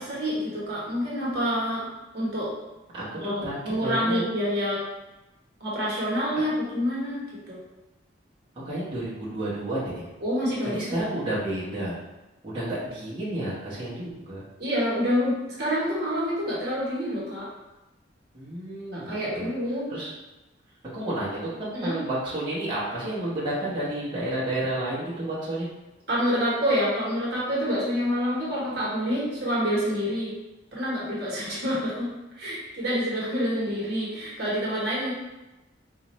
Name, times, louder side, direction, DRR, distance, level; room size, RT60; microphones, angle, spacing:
voice 1, 0.0-1.9 2.1-2.5 3.2-4.8 5.6-7.6 10.2-10.8 14.6-17.5 18.9-19.9 21.7-22.0 26.1-30.3 30.7-32.1 32.4-35.1, equal, 55° right, -6 dB, 1.2 m, -27 dB
voice 2, 2.9-4.2 8.6-10.1 10.7-12.0 12.4-14.4 18.3-19.5 19.9-20.1 20.9-25.7, right 1 dB, 25° right, -11 dB, 0.9 m, -31 dB
4.0 x 2.5 x 3.0 m, 1.0 s
head